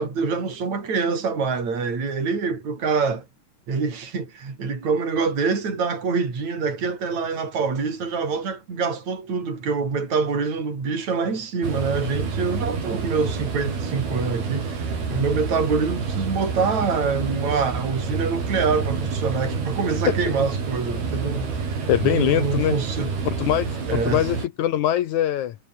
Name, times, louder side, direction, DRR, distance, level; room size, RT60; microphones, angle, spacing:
voice 1, 0.0-3.3 3.7-23.2 23.9-24.3, right 5 dB, 45° right, 6.9 m, -25 dB
sound 1, 11.6-24.5, right 5 dB, 80° right, 8.1 m, -28 dB
voice 2, 21.9-22.8 23.4-25.6, left 12 dB, 70° left, 1.9 m, -22 dB
omnidirectional pair, 4.4 m